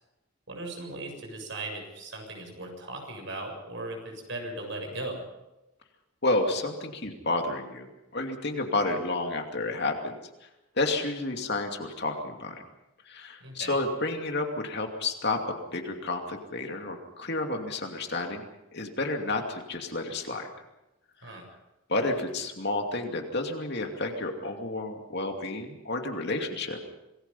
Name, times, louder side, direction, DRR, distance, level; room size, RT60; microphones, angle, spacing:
voice 1, 0.5-5.2 13.4-13.8 21.2-21.5, right 2 dB, 55° right, 3 dB, 7.3 m, -38 dB
voice 2, 6.2-7.9 8.1-10.5 10.7-12.6 13.1-18.4 18.7-20.5 21.3-21.4 21.9-26.8, left 2 dB, 50° left, 4 dB, 2.6 m, -30 dB
27.0 x 20.0 x 5.6 m, 0.97 s
head